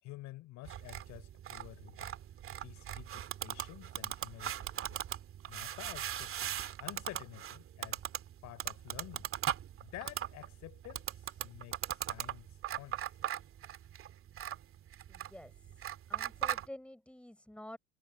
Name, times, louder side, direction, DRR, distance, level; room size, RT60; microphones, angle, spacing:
voice 1, 0.0-2.2 2.6-5.0 5.5-8.0 8.4-9.3 9.8-12.5 12.7-13.0, left 18 dB, 50° left, 6.7 m, -50 dB
sound 1, 0.6-16.7, right 11 dB, 35° right, 2.5 m, -40 dB
voice 2, 15.1-17.8, left 1 dB, 5° left, 5.0 m, -50 dB
figure-of-eight pair, 65°, 37 cm